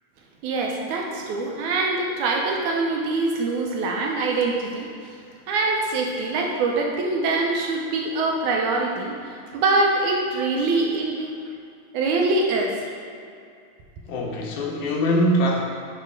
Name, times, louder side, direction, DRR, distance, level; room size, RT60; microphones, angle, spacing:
voice 1, 0.4-4.9 5.5-11.3 11.9-12.7, right 3 dB, 90° right, 0 dB, 2.2 m, -24 dB
voice 2, 14.1-15.6, equal, 85° left, -1 dB, 2.3 m, -22 dB
8.1 x 3.4 x 4.6 m, 2.4 s
omnidirectional pair, 3.4 m